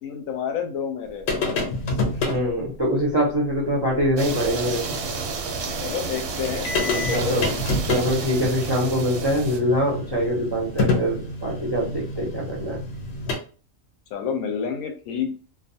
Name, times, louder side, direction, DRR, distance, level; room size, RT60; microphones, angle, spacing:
voice 1, 0.0-1.3 5.8-7.5 14.1-15.3, left 7 dB, 90° left, 4 dB, 1.0 m, -29 dB
sound 1, 1.3-2.4 4.0-4.1 4.4-4.5 6.1-6.2 6.4-13.4, left 2 dB, 60° left, 0.8 m, -27 dB
voice 2, 2.0-5.0 7.1-7.5 7.9-12.8, equal, 30° right, -4 dB, 0.4 m, -24 dB
sound 2, 4.2-9.6, right 4 dB, 65° right, 0.7 m, -31 dB
2.4 x 2.2 x 2.6 m, 0.37 s
omnidirectional pair, 1.4 m